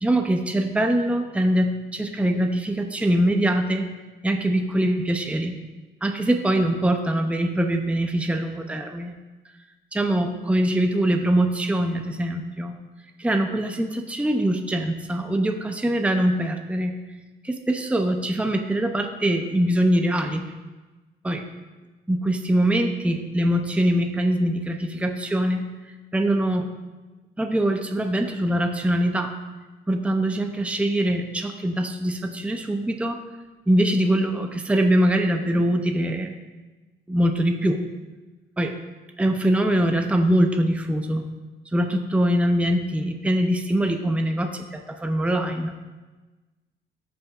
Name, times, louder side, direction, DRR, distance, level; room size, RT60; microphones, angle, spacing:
voice 1, 0.0-3.9 4.2-5.5 6.0-9.1 10.0-12.7 13.2-16.9 17.4-20.4 21.2-21.4 22.1-25.6 26.1-26.7 27.4-29.3 29.9-33.2 33.7-36.4 37.1-37.8 38.6-38.7 39.2-41.2 41.7-45.7, right 1 dB, 5° right, 5 dB, 0.6 m, -23 dB
13.5 x 5.1 x 2.5 m, 1.2 s
cardioid pair, 90°, 20 cm